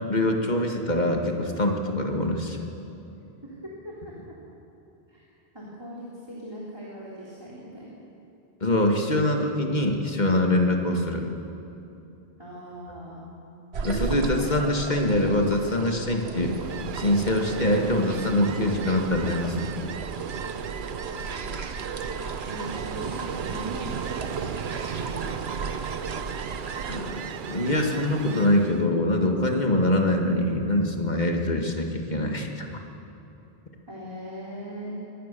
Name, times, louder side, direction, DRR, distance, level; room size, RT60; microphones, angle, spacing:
voice 1, 0.1-2.6 8.6-11.3 13.8-16.6 16.9-19.7 26.9-32.8, left 1 dB, 45° left, 2 dB, 2.1 m, -24 dB
voice 2, 3.4-4.1 5.1-5.2 5.5-8.0 12.4-13.2 22.5-25.4 33.9-34.9, equal, 25° right, -6 dB, 3.4 m, -40 dB
sound 1, 13.7-27.1, right 4 dB, 85° right, 1.5 m, -36 dB
Ocean, 16.1-28.9, right 8 dB, 60° right, 0.7 m, -36 dB
24.0 x 18.0 x 6.9 m, 3.0 s
omnidirectional pair, 1.0 m